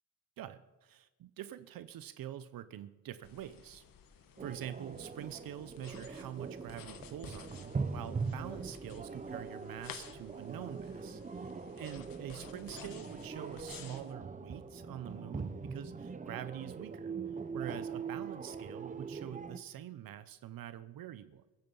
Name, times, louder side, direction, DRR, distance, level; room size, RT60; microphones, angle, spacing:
voice 1, 0.4-3.8 4.4-11.5 11.8-17.1 17.5-21.5, right 11 dB, 75° right, 13 dB, 0.8 m, -45 dB
sound 1, 3.2-14.1, left 7 dB, 70° left, 1.4 m, -54 dB
sound 2, 4.4-19.6, right 5 dB, 20° right, 0.7 m, -42 dB
sound 3, 6.6-12.5, right 1 dB, 5° right, 1.7 m, -65 dB
22.0 x 8.9 x 5.5 m, 1.1 s
cardioid pair, 125°, 35 cm